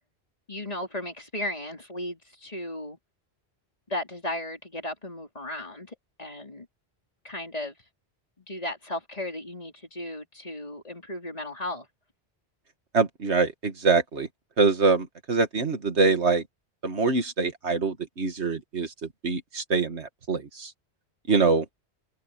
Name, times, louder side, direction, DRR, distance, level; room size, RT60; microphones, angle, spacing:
voice 1, 0.5-3.0 3.9-6.7 7.2-7.8 8.4-11.9, left 1 dB, 35° left, 3.9 m, -35 dB
voice 2, 12.9-14.3 14.6-16.4 16.8-18.9 19.2-20.7 21.3-21.7, right 4 dB, 85° right, 2.1 m, -24 dB
omnidirectional pair, 1.1 m